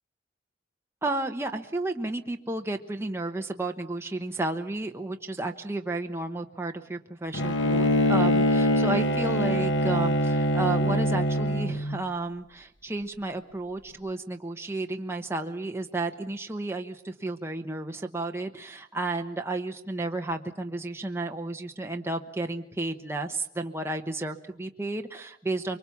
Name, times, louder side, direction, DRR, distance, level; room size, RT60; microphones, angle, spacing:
voice 1, 1.0-25.8, right 2 dB, 15° right, 4 dB, 1.0 m, -32 dB
Bowed string instrument, 7.3-12.0, equal, 75° left, 1.4 m, -24 dB
24.5 x 23.5 x 7.1 m, 0.69 s
head